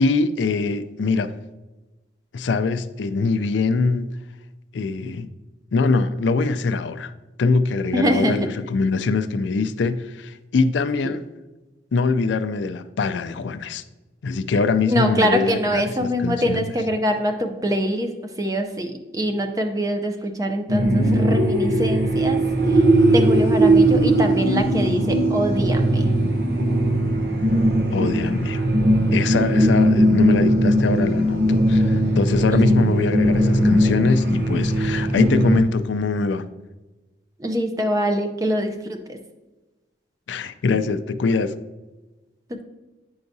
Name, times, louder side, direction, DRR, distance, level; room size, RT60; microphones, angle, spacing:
voice 1, 0.0-1.3 2.3-4.1 4.7-5.3 5.7-7.1 7.4-11.2 11.9-13.8 14.2-16.7 27.9-28.7 29.1-36.5 40.3-41.5, left 4 dB, 85° left, 0.4 m, -23 dB
voice 2, 7.9-8.5 11.0-11.2 14.9-18.1 18.4-22.4 22.7-26.1 29.3-29.8 32.5-32.7 37.4-39.2, equal, 20° right, 0.5 m, -24 dB
sound 1, 20.7-35.6, right 1 dB, 60° right, 0.8 m, -19 dB
9.5 x 4.7 x 2.7 m
head